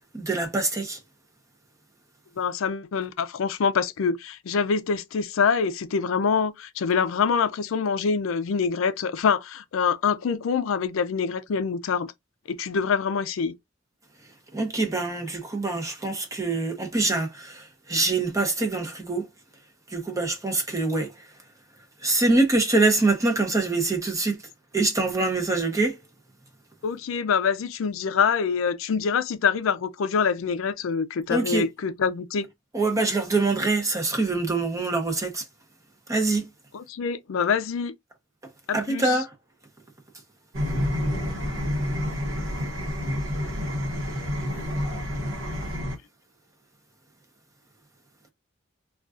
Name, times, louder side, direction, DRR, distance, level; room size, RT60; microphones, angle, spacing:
voice 1, 0.1-1.0 14.5-19.3 19.9-21.3 22.0-24.5 24.7-26.0 31.3-31.7 32.7-35.5 36.1-36.5 38.7-39.3, right 3 dB, 15° right, 0.6 m, -24 dB
voice 2, 2.4-12.1 12.5-13.5 26.8-32.5 36.7-37.9 38.7-39.2, left 6 dB, 80° left, 0.4 m, -25 dB
sound 1, 40.5-46.0, equal, 70° right, 0.9 m, -28 dB
3.6 x 2.3 x 2.4 m
head